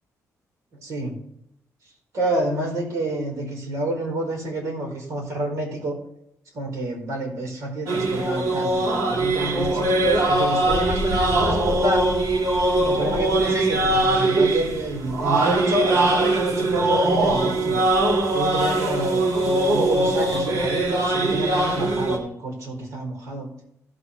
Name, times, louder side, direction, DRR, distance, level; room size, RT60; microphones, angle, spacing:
voice 1, 0.8-1.2 2.1-6.0 6.5-12.1 12.8-17.8 18.3-23.5, right 1 dB, 60° right, 0 dB, 4.4 m, -28 dB
sound 1, 7.9-22.2, right 2 dB, 80° right, 2.4 m, -21 dB
16.0 x 8.0 x 3.3 m, 0.74 s
cardioid pair, 165°, 6 cm